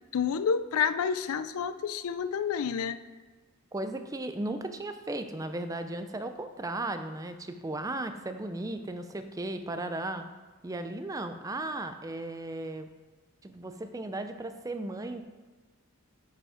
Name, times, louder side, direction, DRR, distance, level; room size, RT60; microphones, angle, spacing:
voice 1, 0.1-3.0, left 7 dB, 75° left, 14 dB, 0.4 m, -29 dB
voice 2, 3.7-10.2 10.6-12.9 13.4-15.2, right 2 dB, 15° right, 8 dB, 0.4 m, -36 dB
9.2 x 5.1 x 4.9 m, 1.3 s
head